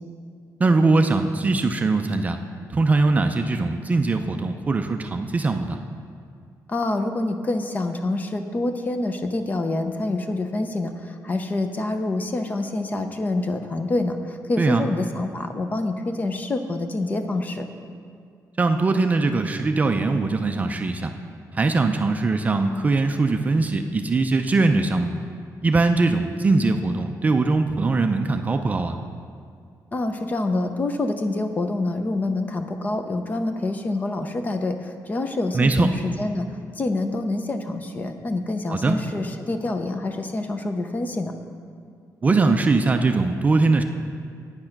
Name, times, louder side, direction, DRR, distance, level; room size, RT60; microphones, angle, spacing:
voice 1, 0.6-2.4 2.7-5.8 14.6-14.8 18.6-21.1 21.5-25.1 25.6-29.0 35.5-35.9 38.7-39.0 42.2-43.8, right 3 dB, 25° right, 6 dB, 0.4 m, -21 dB
voice 2, 6.7-17.7 29.9-41.3, left 2 dB, 25° left, 7 dB, 0.6 m, -26 dB
8.9 x 8.7 x 5.8 m, 2.3 s
wide cardioid pair, 165°, 6 cm